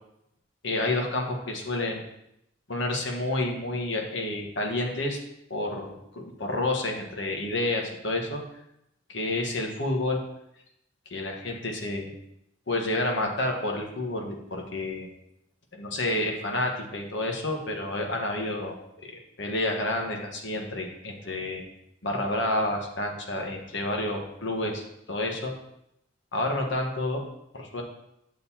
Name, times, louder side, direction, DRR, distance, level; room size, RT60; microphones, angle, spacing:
voice 1, 0.6-2.0 2.7-5.2 5.5-8.4 9.1-10.2 11.1-12.1 12.7-15.1 15.8-21.6 22.0-25.5 26.3-27.2 27.5-27.8, left 2 dB, 70° left, 1 dB, 1.3 m, -29 dB
9.2 x 6.4 x 2.8 m, 0.80 s
head